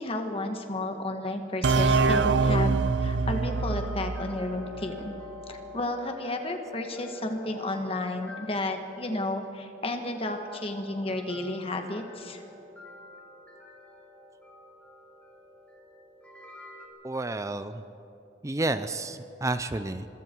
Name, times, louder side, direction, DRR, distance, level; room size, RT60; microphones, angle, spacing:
voice 1, 0.0-2.7 3.0-5.1 5.5-12.4, left 2 dB, 30° left, 5 dB, 1.7 m, -32 dB
sound 1, 1.6-5.2, right 4 dB, 75° right, 0.7 m, -25 dB
sound 2, 3.2-16.9, left 4 dB, 5° left, 3.7 m, -47 dB
voice 2, 17.0-17.8 18.4-20.1, right 2 dB, 15° right, 11 dB, 0.5 m, -30 dB
26.0 x 22.5 x 4.7 m, 2.9 s
head